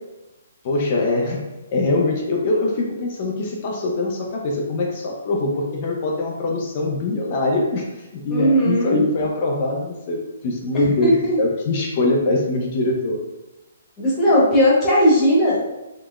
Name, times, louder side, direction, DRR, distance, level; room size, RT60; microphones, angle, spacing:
voice 1, 0.6-1.4 1.7-7.8 8.1-11.1 11.4-13.2, left 2 dB, 40° left, 0 dB, 0.5 m, -23 dB
voice 2, 8.3-9.0 11.0-11.4 14.0-15.7, equal, 15° left, -7 dB, 1.0 m, -17 dB
3.7 x 2.0 x 2.3 m, 1.0 s
hypercardioid pair, 160°, 0 cm